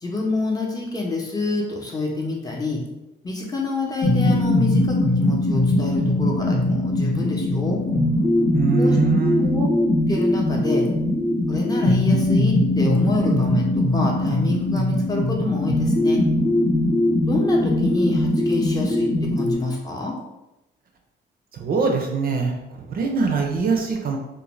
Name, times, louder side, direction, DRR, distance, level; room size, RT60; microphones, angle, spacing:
voice 1, 0.0-2.8 3.2-7.8 8.8-9.0 9.4-9.7 10.1-10.9 11.5-16.2 17.3-20.2, left 2 dB, 20° left, -2 dB, 0.6 m, -27 dB
sound 1, 4.0-19.5, left 1 dB, 70° left, 0.9 m, -20 dB
voice 2, 8.5-9.5 21.5-24.2, right 5 dB, 50° right, 2 dB, 0.5 m, -23 dB
2.5 x 2.1 x 3.0 m, 0.95 s
cardioid pair, 90°, 20 cm